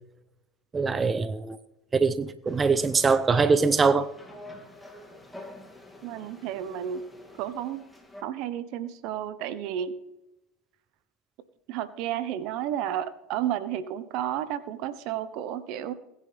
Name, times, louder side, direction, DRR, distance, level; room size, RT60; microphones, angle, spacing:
voice 1, 0.7-1.6 1.9-4.1, right 4 dB, 20° right, 13 dB, 0.7 m, -23 dB
sound 1, 2.5-8.2, left 1 dB, 5° left, 2.6 m, -48 dB
voice 2, 6.0-7.0 7.4-7.9 8.2-9.9 11.7-15.9, right 10 dB, 60° right, 13 dB, 1.2 m, -32 dB
20.0 x 9.7 x 3.5 m, 0.96 s
hypercardioid pair, 95°, 0 cm